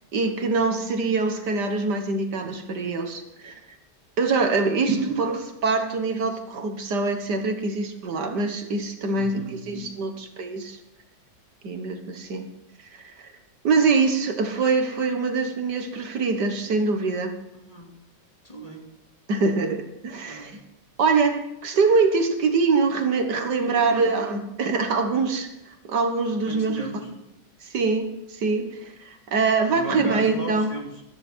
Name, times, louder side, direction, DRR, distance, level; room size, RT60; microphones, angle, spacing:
voice 1, 0.1-3.5 4.2-10.8 11.6-12.5 12.9-13.3 13.6-17.3 19.3-20.6 21.0-25.5 25.9-27.0 27.6-30.7, right 4 dB, 70° right, 6 dB, 1.9 m, -24 dB
voice 2, 4.7-5.1 9.1-9.6 17.5-18.0 18.4-18.8 20.3-20.5 23.6-24.2 26.4-27.1 29.7-31.0, right 1 dB, 20° left, 0 dB, 2.8 m, -37 dB
16.5 x 14.0 x 4.5 m, 0.89 s
omnidirectional pair, 1.9 m